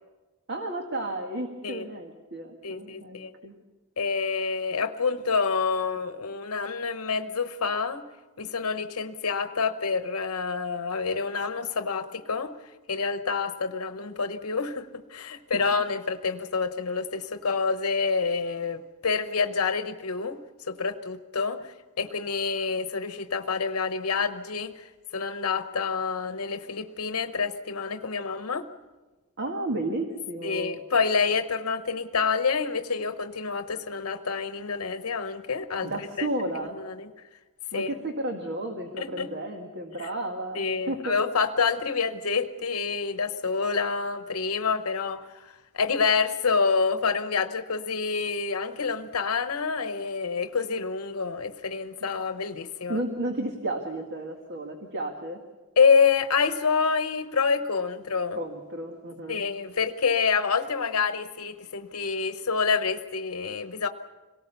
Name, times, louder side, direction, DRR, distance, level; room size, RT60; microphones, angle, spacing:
voice 1, 0.5-3.5 29.4-30.8 35.8-36.8 37.7-41.2 52.9-55.4 58.4-59.4, right 1 dB, 50° right, 3 dB, 1.8 m, -33 dB
voice 2, 2.6-3.3 4.0-8.0 8.4-20.4 20.7-28.7 30.4-36.3 36.7-37.1 37.7-37.9 39.0-39.3 40.0-40.1 40.5-53.0 55.8-58.4 59.3-63.9, left 5 dB, 85° left, 9 dB, 0.9 m, -27 dB
26.5 x 18.5 x 6.9 m, 1.2 s
head